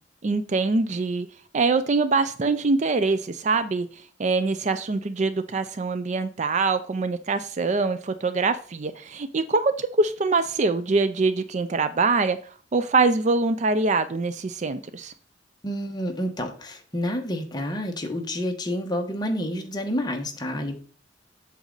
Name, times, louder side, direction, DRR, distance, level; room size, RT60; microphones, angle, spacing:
voice 1, 0.2-1.3 1.5-3.9 4.2-12.4 12.7-15.1, right 3 dB, 40° right, 0.4 m, -24 dB
voice 2, 15.6-20.7, equal, 20° left, 1.2 m, -29 dB
8.0 x 6.2 x 4.0 m
head